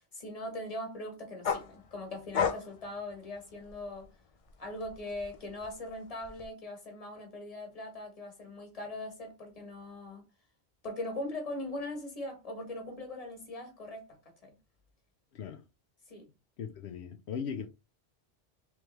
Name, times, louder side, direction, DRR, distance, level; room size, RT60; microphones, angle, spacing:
voice 1, 0.0-4.1 4.6-10.2 10.8-14.6 16.1-16.3, left 1 dB, 35° left, 1.4 m, -40 dB
sound 1, 1.4-4.1 4.5-6.5, left 7 dB, 55° left, 0.4 m, -35 dB
voice 2, 16.6-17.7, left 7 dB, 80° left, 0.9 m, -38 dB
3.5 x 3.3 x 3.2 m
omnidirectional pair, 1.1 m